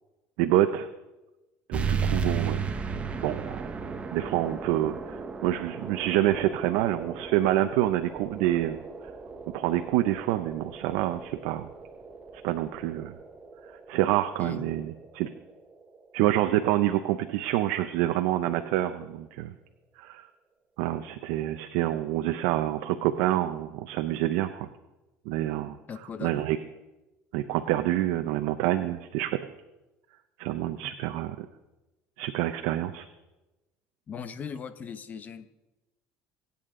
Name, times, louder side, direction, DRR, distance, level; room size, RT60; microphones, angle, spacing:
voice 1, 0.4-0.9 1.7-2.6 3.2-3.5 4.1-5.0 5.4-8.8 9.5-11.7 12.4-13.1 13.9-15.3 16.1-19.5 20.0-20.3 20.8-24.7 25.3-25.8 26.2-26.6 27.3-29.4 30.4-31.5 32.2-33.1, right 14 dB, 80° right, 8 dB, 0.7 m, -27 dB
sound 1, 1.7-16.8, right 5 dB, 25° right, 1.1 m, -36 dB
voice 2, 25.9-26.3 34.1-35.5, left 6 dB, 35° left, 11 dB, 1.0 m, -38 dB
25.0 x 8.6 x 3.8 m, 1.0 s
cardioid pair, 120°, 5 cm